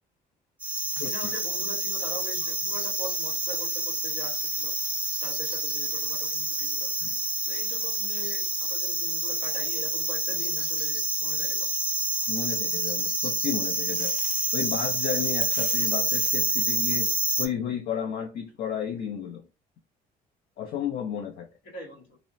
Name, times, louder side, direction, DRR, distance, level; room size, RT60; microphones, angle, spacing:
sound 1, 0.6-17.5, right 2 dB, 10° right, 0.5 m, -28 dB
voice 1, 1.0-4.7 5.2-6.9 7.5-11.7 21.7-22.2, left 1 dB, 85° left, 1.1 m, -42 dB
voice 2, 12.3-14.2 14.5-19.4 20.6-21.5, left 8 dB, 60° left, 0.5 m, -32 dB
2.8 x 2.0 x 2.5 m
cardioid pair, 110°, 17 cm